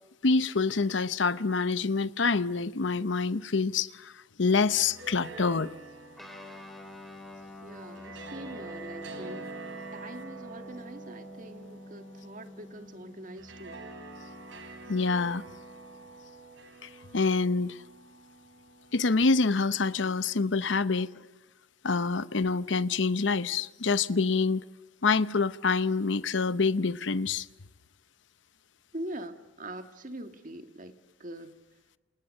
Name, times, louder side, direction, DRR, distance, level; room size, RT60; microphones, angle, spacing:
voice 1, 0.2-4.1 4.4-5.7 14.9-15.4 16.8-17.8 18.9-21.1 21.8-24.6 25.0-27.5, left 4 dB, 70° left, 0.8 m, -26 dB
sound 1, 4.5-19.7, right 3 dB, 70° right, 4.3 m, -47 dB
Guitar, 6.1-16.1, left 2 dB, ahead, 3.3 m, -48 dB
voice 2, 7.6-13.8 28.9-31.6, right 1 dB, 40° right, 1.9 m, -43 dB
28.5 x 28.0 x 6.6 m
head